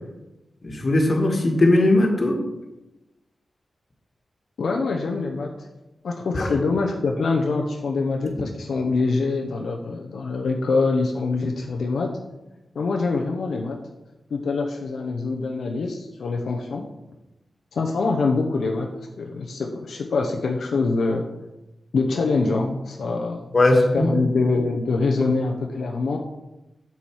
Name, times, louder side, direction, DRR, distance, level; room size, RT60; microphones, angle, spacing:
voice 1, 0.6-2.4 6.3-6.5 23.5-24.2, left 1 dB, 40° left, 1 dB, 1.7 m, -19 dB
voice 2, 4.6-5.7 6.0-12.1 12.7-13.8 14.3-16.9 17.7-18.9 19.2-21.3 21.9-23.5 23.9-26.2, left 3 dB, 80° left, 1 dB, 0.8 m, -24 dB
7.2 x 7.1 x 4.7 m, 0.98 s
wide cardioid pair, 100°, 0 cm